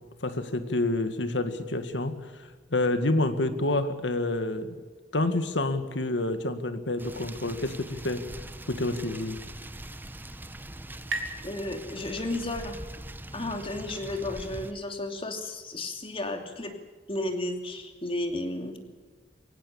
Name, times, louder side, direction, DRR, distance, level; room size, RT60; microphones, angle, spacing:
voice 1, 0.2-4.8 5.1-8.2 8.7-9.4, left 2 dB, 85° left, 9 dB, 1.9 m, -28 dB
sound 1, 7.0-14.7, right 1 dB, 10° right, 0.9 m, -42 dB
sound 2, 9.7-13.0, right 2 dB, 85° right, 3.4 m, -41 dB
voice 2, 11.4-12.8 13.3-16.7 17.1-18.8, left 2 dB, 30° left, 5 dB, 2.9 m, -33 dB
23.0 x 18.0 x 7.2 m, 1.4 s
head